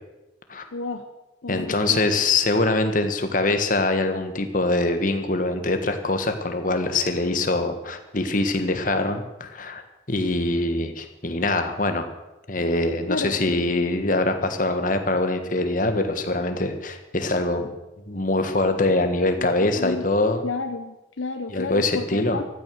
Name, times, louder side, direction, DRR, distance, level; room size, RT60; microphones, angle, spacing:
voice 1, 0.7-1.0 1.4-2.2 13.1-13.5 19.4-20.1 20.4-22.5, left 3 dB, 90° left, 6 dB, 0.9 m, -31 dB
voice 2, 1.5-9.8 10.1-12.1 12.5-17.7 18.1-20.4 21.5-22.4, left 2 dB, 45° left, 7 dB, 1.5 m, -23 dB
15.0 x 12.5 x 6.4 m, 1.0 s
head